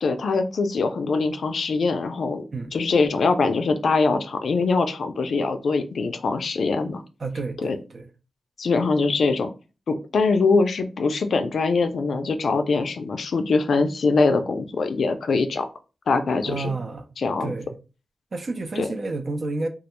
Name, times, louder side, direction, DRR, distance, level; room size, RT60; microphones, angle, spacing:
voice 1, 0.0-2.4 2.7-7.0 7.6-7.8 8.6-9.5 9.9-15.7 16.1-16.7 17.2-17.5 18.8-18.9, left 4 dB, 75° left, 0.3 m, -23 dB
voice 2, 7.2-8.1 16.4-17.1 17.4-17.7 18.3-19.7, right 3 dB, 55° right, 0.4 m, -30 dB
2.3 x 2.1 x 2.9 m
wide cardioid pair, 80°, 0 cm